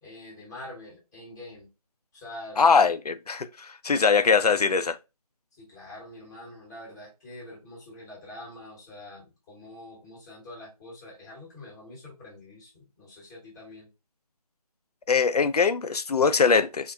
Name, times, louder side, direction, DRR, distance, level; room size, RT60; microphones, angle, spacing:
voice 1, 0.0-1.7 2.1-2.6 5.5-13.9, left 1 dB, 10° left, 0.7 m, -45 dB
voice 2, 2.6-5.0 15.1-16.9, left 5 dB, 80° left, 0.4 m, -22 dB
3.7 x 2.1 x 2.6 m
figure-of-eight pair, 160°, 19 cm